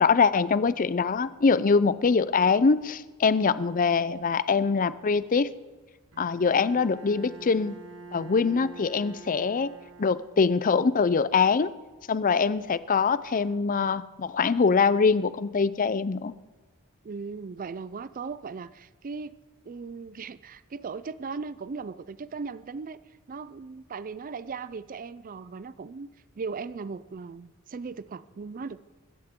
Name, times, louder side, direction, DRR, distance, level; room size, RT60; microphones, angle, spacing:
voice 1, 0.0-5.5 6.2-7.8 8.1-9.7 10.0-11.7 12.1-16.4, left 5 dB, 40° left, 16 dB, 0.5 m, -23 dB
Bowed string instrument, 6.1-10.7, right 4 dB, 65° right, 1.8 m, -46 dB
voice 2, 17.0-19.4 19.6-23.0 23.3-26.1 26.4-29.0, right 4 dB, 40° right, 16 dB, 0.4 m, -38 dB
24.0 x 13.5 x 3.7 m, 1.3 s
head